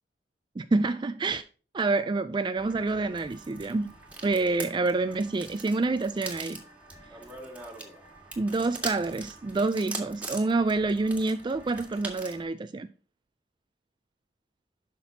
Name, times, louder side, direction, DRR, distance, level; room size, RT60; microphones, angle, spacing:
voice 1, 0.6-1.4 1.7-3.9 4.2-6.6 8.4-12.9, right 3 dB, 25° right, 0.3 m, -27 dB
crunching acorns, 2.6-12.4, right 2 dB, 10° right, 1.9 m, -42 dB
11.0 x 6.0 x 2.8 m
head